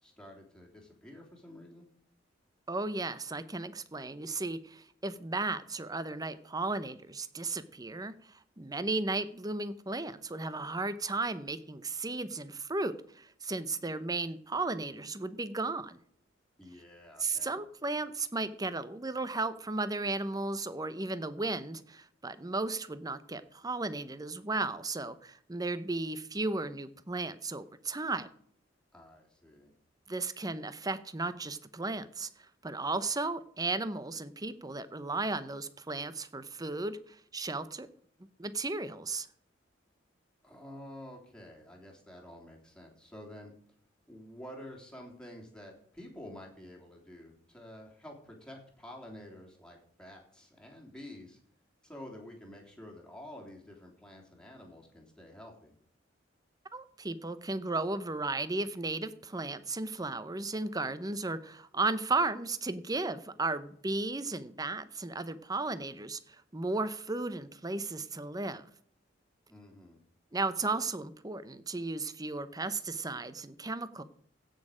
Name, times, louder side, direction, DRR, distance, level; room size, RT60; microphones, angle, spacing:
voice 1, 0.0-1.8 16.6-17.5 28.9-29.7 40.4-43.5 44.1-51.4 51.8-55.7 69.5-70.0, left 1 dB, 5° left, -1 dB, 3.2 m, -49 dB
voice 2, 2.7-16.0 17.2-28.3 30.1-32.3 32.6-37.9 38.4-39.3 56.7-68.6 70.3-74.0, right 3 dB, 20° right, 13 dB, 0.8 m, -35 dB
16.0 x 6.5 x 5.1 m, 0.62 s
head